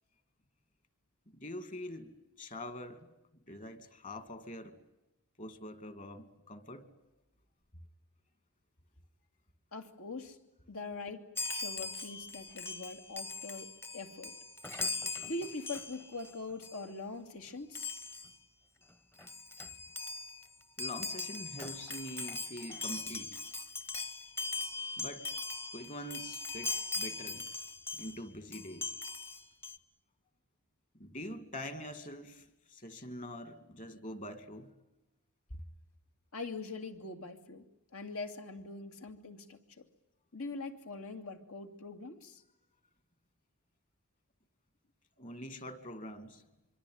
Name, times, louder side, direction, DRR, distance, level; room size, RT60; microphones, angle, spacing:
voice 1, 1.3-3.1 3.5-4.8 5.4-6.9 20.8-23.4 25.0-25.3 25.7-27.5 27.9-29.0 30.9-32.5 32.7-34.7 35.5-35.6 45.2-46.4, left 1 dB, 35° left, 11 dB, 2.4 m, -44 dB
voice 2, 9.7-10.4 10.7-14.3 15.3-17.9 36.3-37.6 37.9-39.8 40.3-42.4, left 3 dB, 70° left, 6 dB, 2.5 m, -43 dB
Chime, 11.3-16.3 16.6-16.8 17.7-18.3 18.9-19.0 19.2-28.2 28.5-29.8, left 3 dB, 10° left, 1.1 m, -40 dB
25.5 x 24.5 x 9.5 m, 0.94 s
head